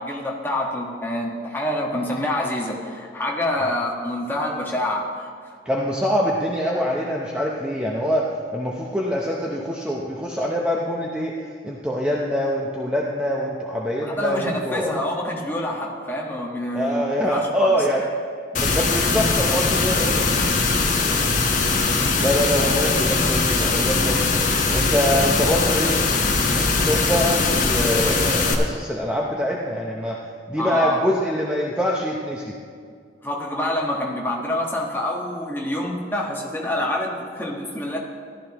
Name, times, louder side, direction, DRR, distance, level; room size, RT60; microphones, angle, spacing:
voice 1, 0.0-5.5 14.0-17.8 30.6-31.0 33.2-38.0, left 1 dB, 10° left, -2 dB, 1.4 m, -26 dB
voice 2, 5.6-11.3 11.6-14.9 16.7-18.0 18.5-20.2 22.2-24.4 24.7-26.1 26.5-30.2 30.5-32.5, equal, 5° right, -3 dB, 0.7 m, -24 dB
sound 1, 18.5-28.5, left 3 dB, 45° left, 1.1 m, -21 dB
14.5 x 12.0 x 3.0 m, 2.2 s
head